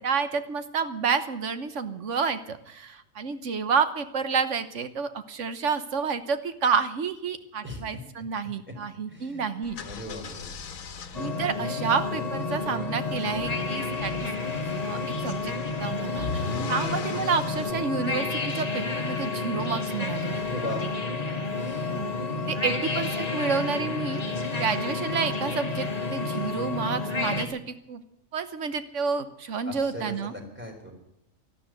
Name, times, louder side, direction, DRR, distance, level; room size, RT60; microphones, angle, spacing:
voice 1, 0.0-9.8 11.1-14.3 14.8-15.5 15.8-20.4 21.9-22.1 22.5-24.2 24.5-27.6 27.9-28.0 28.3-30.3, right 5 dB, 65° right, 11 dB, 1.4 m, -29 dB
voice 2, 7.6-8.0 8.7-8.8 9.1-9.5 9.8-10.4 20.3-21.0 21.6-22.0 22.5-22.8 29.7-30.9, left 1 dB, 10° right, 2 dB, 3.8 m, -38 dB
sound 1, 9.6-17.7, left 5 dB, 90° left, 1.5 m, -39 dB
sound 2, 11.1-27.4, left 3 dB, 30° left, 1.6 m, -30 dB
12.5 x 12.5 x 9.0 m, 0.80 s
omnidirectional pair, 1.4 m